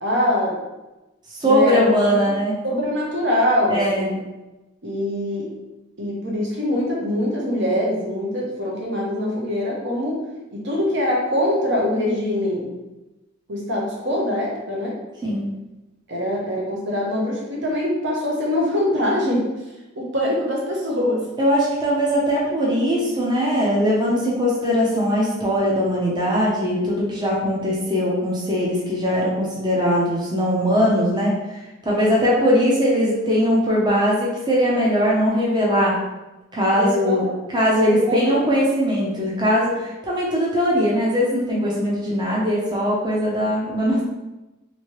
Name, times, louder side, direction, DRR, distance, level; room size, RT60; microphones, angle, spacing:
voice 1, 0.0-0.6 1.4-2.4 2.6-4.2 4.8-5.5 6.0-12.7 13.5-15.0 16.1-19.5 19.9-21.3 36.7-37.2 37.9-38.6, left 1 dB, 55° right, -3 dB, 0.9 m, -23 dB
voice 2, 1.3-2.5 3.7-4.1 15.2-15.5 21.4-31.6 31.8-36.0 36.5-37.3 37.5-44.0, equal, 20° right, -5 dB, 0.6 m, -20 dB
3.0 x 2.7 x 3.0 m, 1.0 s
head